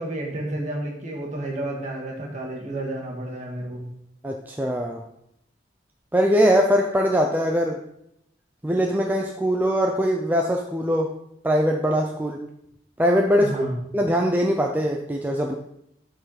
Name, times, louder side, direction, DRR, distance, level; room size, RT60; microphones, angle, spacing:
voice 1, 0.0-3.8 13.4-13.8, right 1 dB, 40° right, -2 dB, 2.0 m, -31 dB
voice 2, 4.2-5.0 6.1-7.8 8.6-11.1 11.4-12.4 13.0-13.5 13.9-15.5, equal, 10° right, 1 dB, 0.5 m, -21 dB
8.0 x 4.6 x 5.9 m, 0.78 s
head